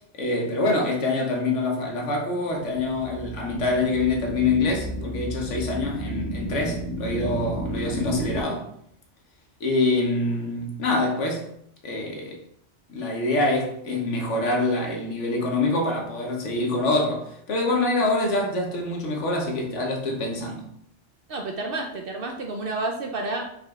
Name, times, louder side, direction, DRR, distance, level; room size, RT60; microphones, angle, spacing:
voice 1, 0.2-8.7 9.6-11.5 11.8-12.4 12.9-20.7, left 2 dB, 70° left, 1.2 m, -25 dB
sound 1, 2.6-8.4, equal, 15° left, 1.7 m, -33 dB
voice 2, 21.3-23.5, right 2 dB, 60° right, 0.6 m, -30 dB
5.2 x 3.8 x 2.3 m
omnidirectional pair, 1.3 m